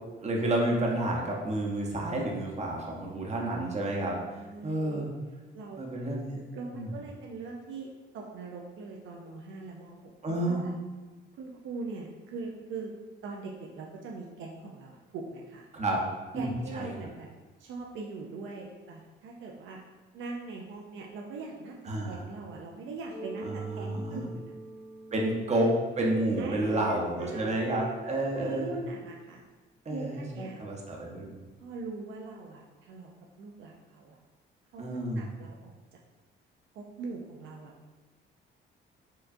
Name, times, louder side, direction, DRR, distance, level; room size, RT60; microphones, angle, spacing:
voice 1, 0.2-4.2 4.6-5.1 5.8-6.4 6.7-6.9 10.2-10.6 15.7-16.0 16.3-16.9 21.9-22.2 23.4-24.2 25.1-25.7 26.0-28.7 29.9-31.3 34.8-35.3, right 1 dB, 35° right, -1 dB, 0.8 m, -30 dB
voice 2, 4.3-5.1 5.5-5.8 6.5-10.0 10.3-10.7 11.4-12.9 13.2-15.7 16.4-17.3 17.6-19.8 20.1-24.5 25.1-25.6 26.4-27.9 28.3-29.4 29.9-30.6 31.6-33.1 33.4-34.2 34.7-34.8 35.2-35.7 36.7-37.7, right 3 dB, 75° right, -1 dB, 0.5 m, -41 dB
Mallet percussion, 23.1-28.6, right 2 dB, 55° left, 1.5 m, -46 dB
4.6 x 2.2 x 2.6 m, 1.2 s
cardioid pair, 90°, 20 cm